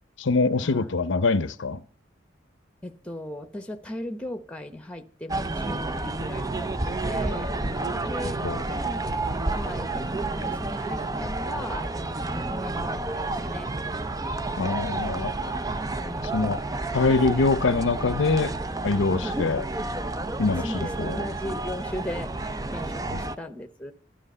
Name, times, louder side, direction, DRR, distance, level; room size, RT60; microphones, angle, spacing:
voice 1, 0.2-1.8 8.4-8.6 14.6-15.6 16.3-16.6 16.9-18.5 18.8-19.6 20.4-20.6 21.0-21.2 23.1-23.2, left 3 dB, 70° left, 0.7 m, -24 dB
voice 2, 2.8-7.6 8.0-8.4 8.7-9.0 9.4-13.7 16.0-16.4 19.1-19.4 20.6-23.9, left 1 dB, 5° left, 1.0 m, -38 dB
sound 1, 5.3-23.3, right 2 dB, 20° right, 0.6 m, -30 dB
12.0 x 12.0 x 5.5 m
head